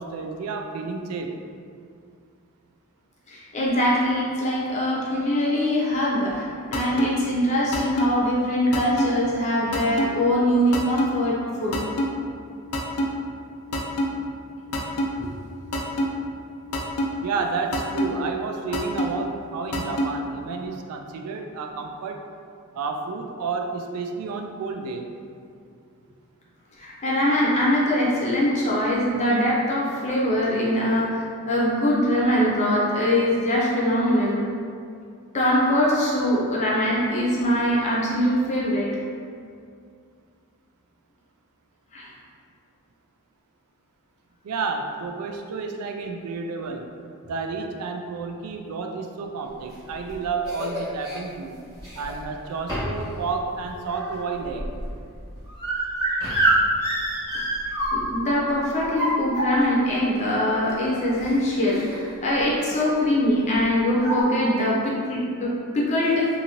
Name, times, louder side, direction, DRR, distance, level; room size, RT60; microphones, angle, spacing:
voice 1, 0.0-1.3 17.2-22.2 22.7-25.1 44.4-46.9 47.2-51.6 52.0-54.7, right 4 dB, 85° right, 4 dB, 0.3 m, -30 dB
voice 2, 3.3-11.8 15.2-15.3 26.8-34.4 35.3-38.9 41.9-42.1 57.9-66.3, equal, 30° left, -5 dB, 0.6 m, -22 dB
sound 1, 6.7-7.1 7.7-8.1 8.7-9.1 9.7-10.1 10.7-11.1 11.7-12.1 12.7-13.1 13.7-14.1 14.7-15.1 15.7-16.1 16.7-17.1 17.7-18.1 18.7-19.1 19.7-20.1, equal, 80° left, 0.4 m, -24 dB
sound 2, 49.7-51.2 51.8-52.3 52.7-53.1 53.4-58.3 58.8-59.8 60.7-60.8 61.1-61.3 61.7-62.1 62.4-62.6 63.5-63.6 64.0-64.2, right 1 dB, 15° right, 1.1 m, -27 dB
2.7 x 2.6 x 2.9 m, 2.3 s
head